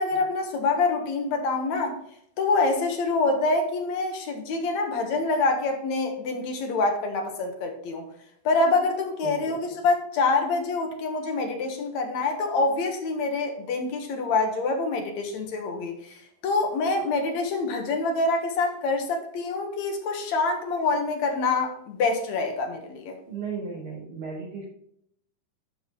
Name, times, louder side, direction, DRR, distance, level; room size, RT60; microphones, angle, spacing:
voice 1, 0.0-2.0 2.4-8.1 8.4-23.2, left 3 dB, 65° left, 4 dB, 2.4 m, -26 dB
voice 2, 9.2-9.8 23.2-24.7, right 5 dB, 70° right, -8 dB, 5.7 m, -36 dB
12.5 x 5.0 x 3.8 m, 0.71 s
omnidirectional pair, 3.7 m